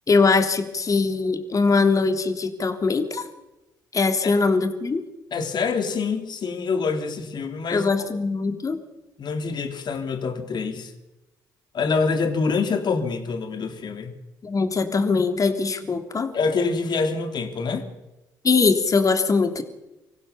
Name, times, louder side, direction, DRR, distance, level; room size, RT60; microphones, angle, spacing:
voice 1, 0.1-3.2 3.9-5.0 7.7-8.8 14.4-16.3 18.4-19.6, left 4 dB, 40° left, 6 dB, 3.3 m, -21 dB
voice 2, 5.3-8.2 9.2-10.9 11.7-14.1 16.3-17.9, left 4 dB, 55° left, 6 dB, 3.4 m, -26 dB
25.5 x 15.5 x 7.0 m, 0.97 s
hypercardioid pair, 55°, 9 cm